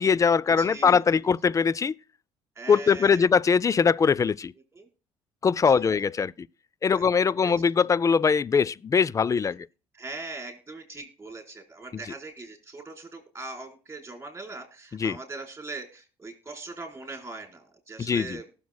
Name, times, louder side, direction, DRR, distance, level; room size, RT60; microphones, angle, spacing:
voice 1, 0.0-2.0 2.7-4.5 5.4-6.5 6.8-9.7 15.0-15.2 18.0-18.4, left 6 dB, 25° left, 0.4 m, -22 dB
voice 2, 0.6-1.0 2.5-3.3 4.7-4.9 5.7-5.9 6.9-7.0 7.4-7.5 9.9-18.5, right 3 dB, 20° right, 4.4 m, -41 dB
19.0 x 7.2 x 2.2 m
supercardioid pair, 70°, 13 cm